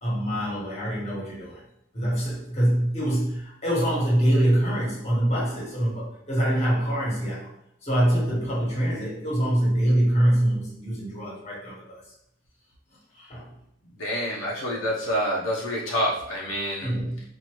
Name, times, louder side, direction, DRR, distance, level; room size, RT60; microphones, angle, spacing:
voice 1, 0.0-1.6 1.9-7.5 7.8-12.0 13.2-13.4 16.8-17.2, right 1 dB, 35° left, -4 dB, 1.3 m, -24 dB
voice 2, 14.0-16.9, equal, 90° left, -4 dB, 0.9 m, -27 dB
4.4 x 2.6 x 3.0 m, 0.76 s
head